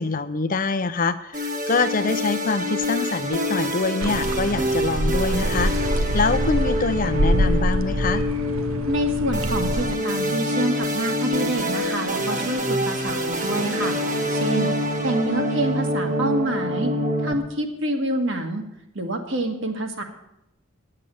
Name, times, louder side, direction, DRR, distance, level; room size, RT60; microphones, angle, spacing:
voice 1, 0.0-5.7 6.1-8.3, left 3 dB, 40° left, 11 dB, 0.6 m, -25 dB
sound 1, 1.3-17.3, equal, 35° right, 1.3 m, -26 dB
sound 2, 4.0-9.9, right 1 dB, 80° right, 0.8 m, -25 dB
voice 2, 8.9-14.7 15.0-16.9 17.2-18.6 18.9-20.0, right 1 dB, 60° right, 4 dB, 1.6 m, -27 dB
10.0 x 7.7 x 8.5 m, 0.85 s
head